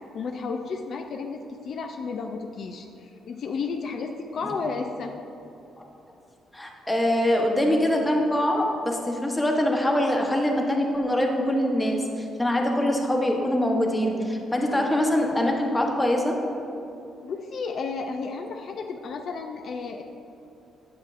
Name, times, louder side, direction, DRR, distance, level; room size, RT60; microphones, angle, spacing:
voice 1, 0.1-5.2 17.2-20.0, left 4 dB, 60° left, 4 dB, 0.3 m, -32 dB
voice 2, 6.5-16.4, left 1 dB, 10° left, 0 dB, 0.9 m, -24 dB
7.5 x 7.4 x 2.5 m, 2.8 s
cardioid pair, 90°, 0 cm